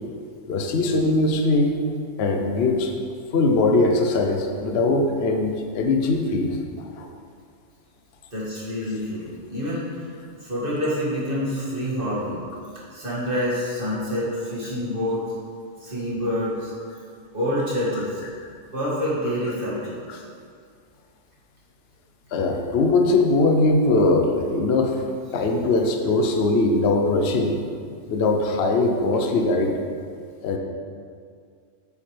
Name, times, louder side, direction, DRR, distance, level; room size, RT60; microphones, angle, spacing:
voice 1, 0.5-1.7 2.2-2.9 3.3-6.6 7.0-7.1 22.3-25.0 25.3-27.6 28.1-29.8 30.4-30.6, left 2 dB, 60° left, 3 dB, 0.9 m, -21 dB
voice 2, 8.3-9.9 10.4-12.4 12.9-15.3 15.8-16.7 17.3-18.2 18.7-20.2, equal, 45° right, -7 dB, 2.4 m, -27 dB
8.6 x 8.6 x 3.3 m, 2.2 s
omnidirectional pair, 1.3 m